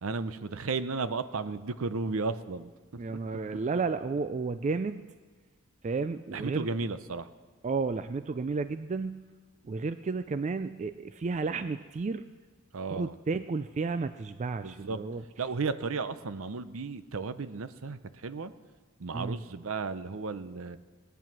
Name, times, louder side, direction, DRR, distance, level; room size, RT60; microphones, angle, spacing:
voice 1, 0.0-2.7 6.3-7.3 12.7-13.2 14.6-15.0 15.4-18.5 19.0-20.8, right 4 dB, 65° right, 13 dB, 0.6 m, -34 dB
voice 2, 3.0-5.0 5.8-6.7 7.6-9.3 9.6-12.3 12.9-15.2 19.1-19.4, right 4 dB, 30° right, 11 dB, 0.3 m, -32 dB
20.0 x 9.1 x 6.0 m, 1.4 s
head